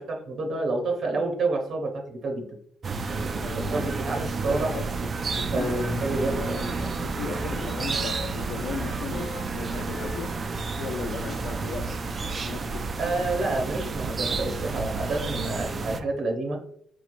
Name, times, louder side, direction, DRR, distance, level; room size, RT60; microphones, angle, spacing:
voice 1, 0.0-2.5 3.1-4.7 5.5-6.6 13.0-16.6, right 2 dB, 65° right, 2 dB, 0.8 m, -29 dB
sound 1, 2.8-16.0, right 4 dB, 40° right, 0.3 m, -30 dB
voice 2, 3.4-3.9 4.4-5.9 6.2-10.4 10.8-12.9, left 6 dB, 70° left, 3 dB, 0.3 m, -37 dB
Wind instrument woodwind instrument, 6.0-11.9, left 2 dB, 50° left, 1.1 m, -43 dB
4.0 x 3.1 x 2.5 m, 0.69 s
cardioid pair, 90°, 0 cm